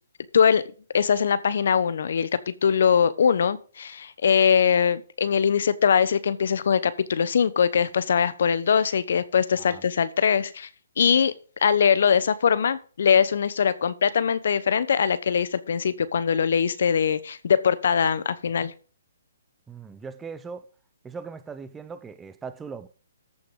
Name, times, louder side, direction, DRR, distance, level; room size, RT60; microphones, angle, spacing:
voice 1, 0.9-10.7 11.0-11.3 11.6-18.7, left 7 dB, 65° left, 1.0 m, -22 dB
voice 2, 19.7-20.7 21.0-22.9, right 5 dB, 10° right, 0.7 m, -39 dB
14.0 x 6.3 x 3.9 m
hypercardioid pair, 135°, 0 cm